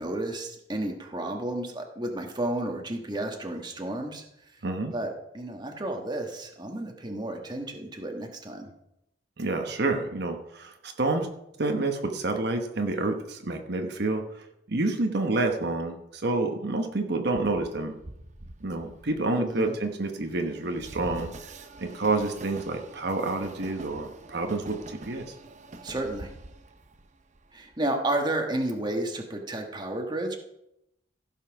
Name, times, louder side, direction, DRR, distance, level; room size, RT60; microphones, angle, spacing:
voice 1, 0.0-4.2 4.9-8.7 19.4-19.7 25.8-26.3 27.5-30.4, right 1 dB, 25° right, 3 dB, 1.3 m, -32 dB
voice 2, 4.6-4.9 9.4-11.3 11.6-14.4 14.7-17.9 18.6-21.3 21.8-25.3, right 2 dB, 60° right, 4 dB, 1.0 m, -28 dB
Train, 17.4-27.8, right 2 dB, 40° right, 0.8 m, -45 dB
15.5 x 5.7 x 5.9 m, 0.83 s
head